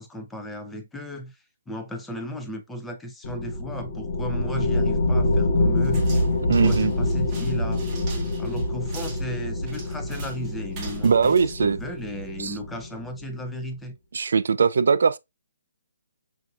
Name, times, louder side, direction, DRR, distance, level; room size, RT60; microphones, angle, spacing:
voice 1, 0.0-6.1 6.5-7.8 8.4-14.0, equal, 5° left, 0.4 m, -35 dB
sound 1, 3.2-13.2, left 2 dB, 45° left, 0.7 m, -26 dB
sound 2, 5.8-12.4, right 4 dB, 15° right, 0.8 m, -44 dB
voice 2, 6.5-6.9 11.0-11.8 12.4-12.5 14.1-15.2, right 5 dB, 70° right, 0.3 m, -20 dB
5.8 x 2.6 x 2.4 m
hypercardioid pair, 170°, 0 cm